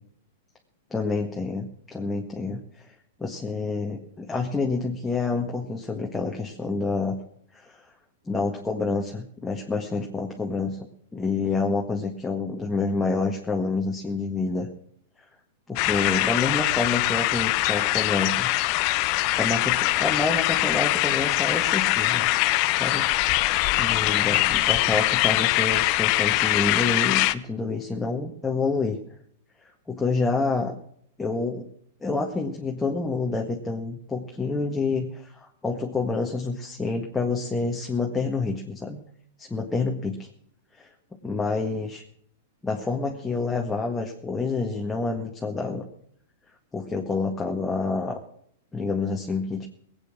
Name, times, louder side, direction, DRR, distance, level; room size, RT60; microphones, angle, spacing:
voice 1, 0.9-2.9 3.2-7.2 7.5-7.8 8.2-10.9 11.1-14.7 15.7-18.5 19.4-22.3 22.7-23.1 23.8-29.0 29.9-30.7 31.2-31.6 32.0-39.0 39.4-40.3 40.7-40.9 41.2-42.0 42.6-45.8 46.7-48.2 48.7-49.7, left 3 dB, 10° left, 0 dB, 1.7 m, -28 dB
sound 1, 15.8-27.3, left 18 dB, 45° left, 0.7 m, -23 dB
19.0 x 8.6 x 6.1 m, 0.65 s
hypercardioid pair, 115°, 0 cm